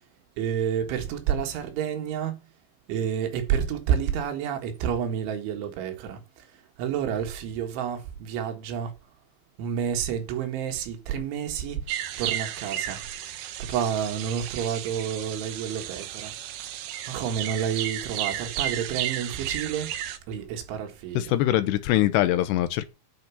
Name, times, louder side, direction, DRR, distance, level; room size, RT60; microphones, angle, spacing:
voice 1, 0.4-2.4 2.9-8.9 9.6-13.1 13.6-16.4 17.1-19.9 20.3-21.3, right 8 dB, 85° right, 4.1 m, -29 dB
sound 1, 11.9-20.2, right 11 dB, 70° right, 2.7 m, -33 dB
voice 2, 21.2-22.9, left 14 dB, 75° left, 2.7 m, -23 dB
10.5 x 5.9 x 7.0 m
omnidirectional pair, 5.3 m